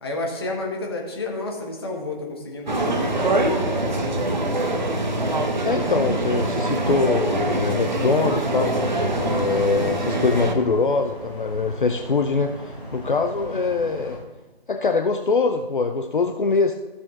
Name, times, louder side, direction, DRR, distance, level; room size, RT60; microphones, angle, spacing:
voice 1, 0.0-4.5, left 2 dB, 25° left, 0 dB, 1.3 m, -31 dB
sound 1, 2.7-10.5, right 2 dB, 50° right, 1.1 m, -24 dB
voice 2, 5.6-8.8 9.2-14.2 14.7-16.7, left 4 dB, 55° left, 5 dB, 0.6 m, -23 dB
sound 2, 9.0-14.2, equal, 10° right, 0.7 m, -38 dB
15.0 x 6.9 x 2.5 m, 1.2 s
figure-of-eight pair, 165°, 30 cm